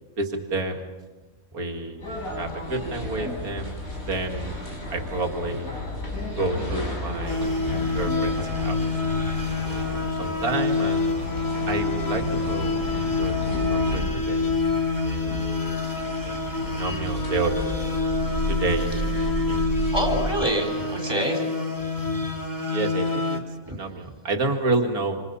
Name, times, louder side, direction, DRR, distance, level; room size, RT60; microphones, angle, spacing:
voice 1, 0.2-0.8 1.5-5.7 6.4-7.6 7.9-9.0 10.2-11.2 11.7-12.8 13.2-13.4 13.7-14.5 15.0-15.8 16.0-17.6 18.5-18.9 19.4-19.9 22.7-25.2, right 2 dB, 85° right, 3 dB, 2.7 m, -30 dB
sound 1, 2.0-20.2, equal, 70° left, 7.4 m, -32 dB
sound 2, 7.3-23.4, left 3 dB, 15° left, 2.9 m, -27 dB
voice 2, 19.5-21.4 21.8-22.3 23.6-23.8, equal, 15° right, 2 dB, 4.6 m, -28 dB
27.5 x 27.0 x 5.6 m, 1.2 s
omnidirectional pair, 1.5 m